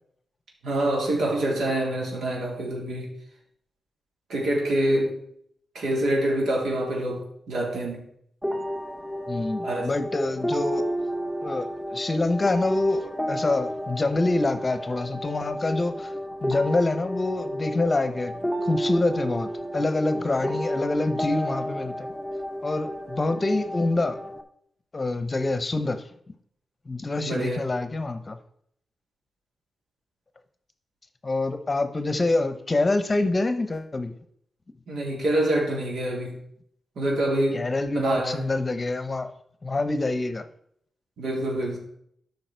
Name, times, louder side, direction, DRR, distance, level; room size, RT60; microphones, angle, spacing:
voice 1, 0.6-3.1 4.3-5.2 5.7-8.0 9.6-9.9 27.2-27.6 34.9-36.4 36.9-37.6 37.9-38.4 41.2-41.8, right 1 dB, 85° right, -2 dB, 3.3 m, -26 dB
sound 1, 8.4-24.4, equal, 5° right, 0.9 m, -32 dB
voice 2, 9.3-10.8 11.4-16.1 16.4-18.3 18.6-22.1 22.6-24.2 24.9-26.0 26.9-28.4 31.2-34.1 37.5-39.3 39.6-40.4, left 2 dB, 25° left, 9 dB, 0.8 m, -26 dB
12.5 x 5.5 x 4.5 m, 0.69 s
wide cardioid pair, 115°, 0 cm